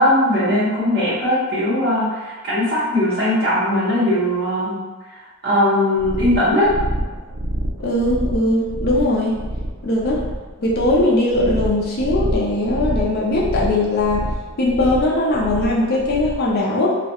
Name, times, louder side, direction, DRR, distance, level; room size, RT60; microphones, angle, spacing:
voice 1, 0.0-4.7 5.4-6.7, left 1 dB, 50° right, -11 dB, 0.8 m, -19 dB
sound 1, 6.0-16.5, right 1 dB, 70° right, 0.4 m, -27 dB
voice 2, 7.8-9.4 9.8-10.2 10.6-14.2 14.6-17.0, left 1 dB, 45° left, -3 dB, 0.4 m, -19 dB
2.3 x 2.1 x 2.8 m, 1.3 s
head